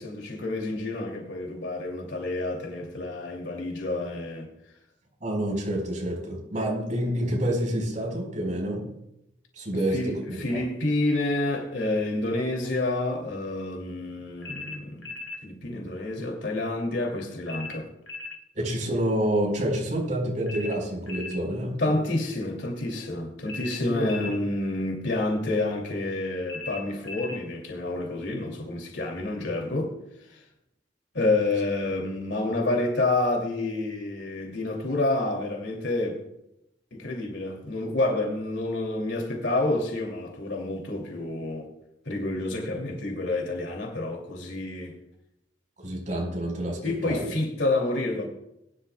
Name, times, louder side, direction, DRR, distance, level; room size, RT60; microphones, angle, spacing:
voice 1, 0.0-4.5 9.7-15.1 15.4-17.9 21.8-30.0 30.3-30.4 31.1-36.2 36.9-41.7 42.0-44.9 46.8-48.3, left 2 dB, 75° left, 2.6 m, -29 dB
voice 2, 5.2-8.9 9.6-10.2 10.5-10.6 18.5-22.0 23.8-24.1 45.8-47.3, right 1 dB, 45° right, 4.6 m, -28 dB
sound 1, 14.4-15.4 17.5-18.4 20.5-21.4 23.5-24.4 26.5-27.4, left 4 dB, 90° left, 1.6 m, -38 dB
20.5 x 11.5 x 2.3 m
head